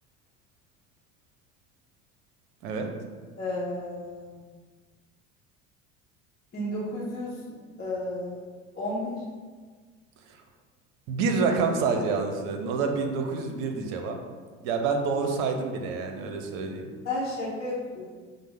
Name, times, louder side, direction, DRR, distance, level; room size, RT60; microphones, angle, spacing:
voice 1, 3.4-4.4 6.5-7.4 7.8-8.4 8.7-9.1 17.0-18.1, left 1 dB, 25° left, -7 dB, 0.9 m, -32 dB
voice 2, 11.1-14.2 14.6-16.9, right 4 dB, 60° right, 4 dB, 0.7 m, -27 dB
5.1 x 2.1 x 3.4 m, 1.5 s
hypercardioid pair, 70°, 38 cm